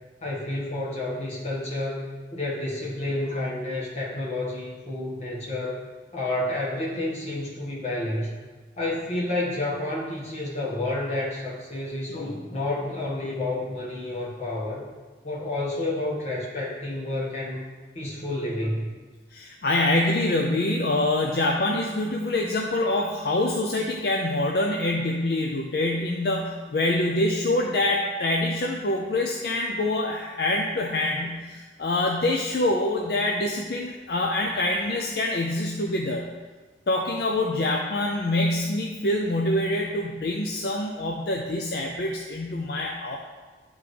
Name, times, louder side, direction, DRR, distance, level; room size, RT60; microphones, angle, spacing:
voice 1, 0.2-5.8 6.1-8.4 8.8-14.8 15.2-17.7 17.9-18.9, left 1 dB, 35° left, -6 dB, 1.6 m, -30 dB
voice 2, 19.3-36.3 36.9-43.2, left 1 dB, 60° left, 0 dB, 0.5 m, -25 dB
10.5 x 3.6 x 3.3 m, 1.3 s
head